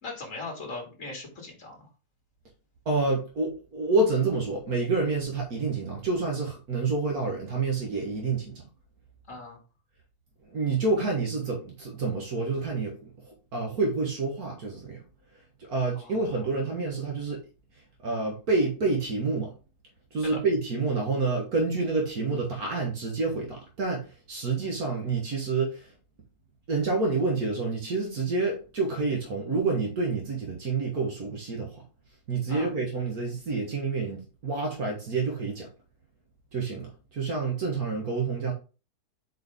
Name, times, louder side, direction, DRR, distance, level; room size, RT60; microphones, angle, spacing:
voice 1, 0.0-1.9 9.3-9.6 15.9-16.5 20.2-20.4 32.5-32.7, left 3 dB, 50° left, 0 dB, 2.9 m, -39 dB
voice 2, 2.9-8.6 10.5-12.9 13.3-15.0 15.6-17.4 18.0-19.5 20.1-25.9 26.7-31.8 32.3-35.7 36.5-38.5, right 3 dB, 65° right, 0 dB, 1.9 m, -28 dB
6.2 x 4.7 x 3.6 m, 0.33 s
omnidirectional pair, 1.8 m